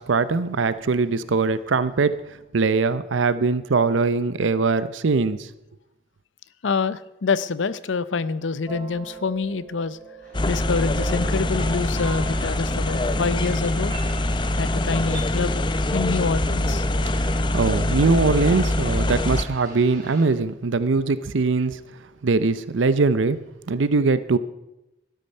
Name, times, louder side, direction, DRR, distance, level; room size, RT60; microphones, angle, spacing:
voice 1, 0.0-5.5 17.1-17.3 17.5-21.8 22.2-23.4 23.7-24.4, right 4 dB, 85° right, 15 dB, 0.6 m, -21 dB
voice 2, 6.6-10.0 10.5-13.9 14.6-16.9, left 4 dB, 80° left, 16 dB, 0.6 m, -26 dB
sound 1, 8.7-15.2, right 5 dB, 20° right, 2.3 m, -41 dB
sound 2, 10.2-20.3, right 1 dB, 45° right, 4.1 m, -48 dB
sound 3, 10.3-19.5, left 1 dB, 25° left, 0.6 m, -24 dB
12.5 x 12.0 x 5.5 m, 0.91 s
head